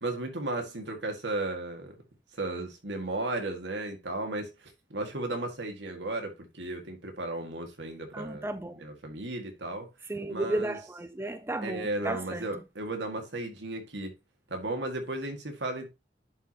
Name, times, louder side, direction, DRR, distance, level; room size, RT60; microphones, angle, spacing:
voice 1, 0.0-2.0 2.3-8.5 8.8-9.9 10.3-10.8 11.6-14.1 14.5-15.9, right 2 dB, 80° right, 2.0 m, -35 dB
voice 2, 8.1-8.8 10.1-12.5, right 1 dB, 15° right, 0.5 m, -33 dB
10.5 x 4.7 x 2.9 m
head